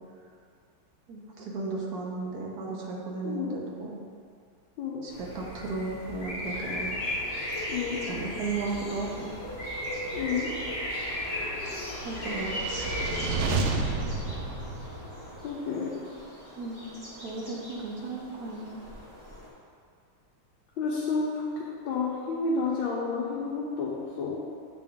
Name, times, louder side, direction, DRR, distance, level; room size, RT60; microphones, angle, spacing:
voice 1, 1.1-4.0 5.0-6.9 8.1-9.3 12.0-12.9 16.6-16.8 17.2-18.7, right 3 dB, 60° right, -2 dB, 1.1 m, -35 dB
voice 2, 3.2-3.6 4.8-5.1 7.7-8.0 10.1-10.5 15.4-15.9 20.8-24.4, left 4 dB, 75° left, -6 dB, 1.5 m, -30 dB
sound 1, 5.1-13.5, left 1 dB, 40° left, 1.3 m, -35 dB
sound 2, 6.4-19.5, equal, 25° right, 1.0 m, -45 dB
sound 3, 12.0-15.4, right 3 dB, 80° right, 1.4 m, -31 dB
7.7 x 3.9 x 3.5 m, 2.2 s
omnidirectional pair, 2.2 m